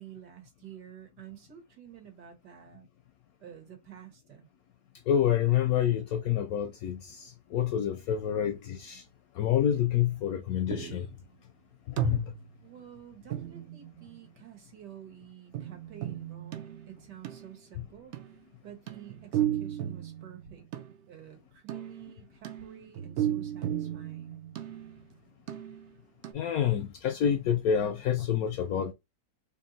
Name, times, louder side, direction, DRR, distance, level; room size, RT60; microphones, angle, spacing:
voice 1, 0.0-2.9 3.4-4.5 12.6-18.1 18.6-20.6 21.1-24.4, right 10 dB, 70° right, 1.8 m, -50 dB
voice 2, 5.1-9.0 9.4-11.1 12.0-12.2 26.3-28.9, left 9 dB, 70° left, 0.9 m, -27 dB
sound 1, 10.7-11.2 12.0-12.6 13.3-14.3 15.5-17.6 18.1-18.4 18.9-21.1 21.7-25.1 25.5-26.0 26.2-26.3, right 11 dB, 90° right, 0.6 m, -35 dB
3.5 x 2.6 x 4.0 m
omnidirectional pair, 1.9 m